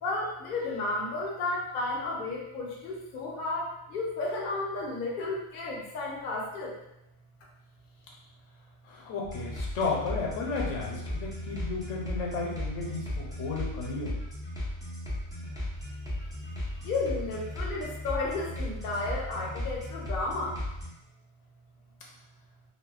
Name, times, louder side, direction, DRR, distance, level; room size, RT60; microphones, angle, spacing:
voice 1, 0.0-6.8 15.8-15.9 16.4-16.5 16.8-20.6, left 2 dB, 60° left, -2 dB, 0.6 m, -33 dB
voice 2, 8.8-14.2, left 4 dB, 80° left, -2 dB, 0.9 m, -33 dB
sound 1, 9.2-20.9, left 1 dB, 5° right, 0.4 m, -36 dB
2.6 x 2.0 x 2.3 m, 0.88 s
omnidirectional pair, 1.3 m